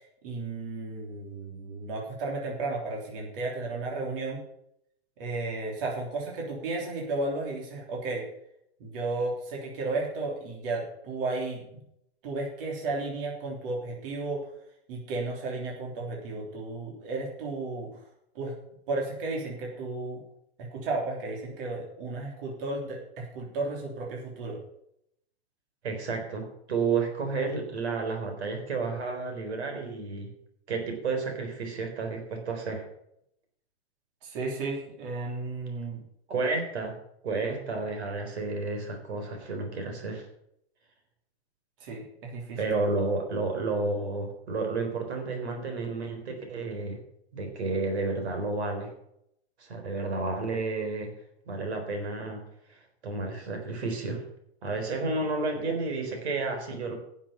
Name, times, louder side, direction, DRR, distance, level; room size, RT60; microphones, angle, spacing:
voice 1, 0.2-4.4 5.2-8.3 8.8-11.8 12.2-14.5 14.9-18.0 18.3-18.5 18.9-20.2 20.6-24.6 34.2-36.0 41.8-42.6, right 3 dB, 55° right, -1 dB, 3.4 m, -33 dB
voice 2, 25.8-30.3 30.7-32.8 36.3-36.9 37.2-40.3 42.6-47.0 47.3-48.9 49.6-51.1 51.5-52.4 52.7-54.2 54.6-56.9, right 3 dB, 80° right, 4 dB, 4.1 m, -31 dB
10.5 x 7.4 x 7.1 m, 0.75 s
hypercardioid pair, 140°, 32 cm